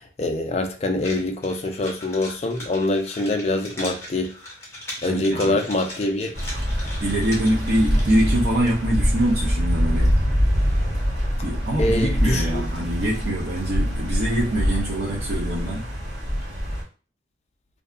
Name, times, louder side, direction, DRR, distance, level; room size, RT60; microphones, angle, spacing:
voice 1, 0.0-4.3 5.0-6.3 11.8-12.6, left 2 dB, 35° left, 0.3 m, -24 dB
sound 1, 1.0-8.5, left 1 dB, 15° left, 0.7 m, -39 dB
voice 2, 5.1-5.6 7.0-10.1 11.4-15.9, right 1 dB, 60° right, 0.6 m, -24 dB
sound 2, 6.3-16.8, equal, 90° right, 1.0 m, -24 dB
2.6 x 2.3 x 2.3 m
head